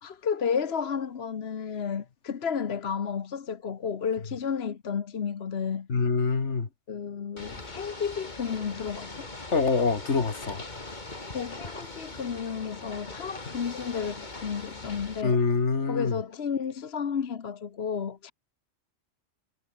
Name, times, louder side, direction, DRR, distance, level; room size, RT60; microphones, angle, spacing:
voice 1, 0.0-5.9 6.9-9.3 11.3-15.4 15.9-18.3, left 6 dB, 60° left, 1.3 m, -32 dB
voice 2, 5.9-6.7 9.5-10.6 15.2-16.2, left 4 dB, 80° left, 2.4 m, -25 dB
Ocean / Boat Water vehicle, 7.4-15.2, left 2 dB, 40° left, 2.8 m, -41 dB
omnidirectional pair, 1.2 m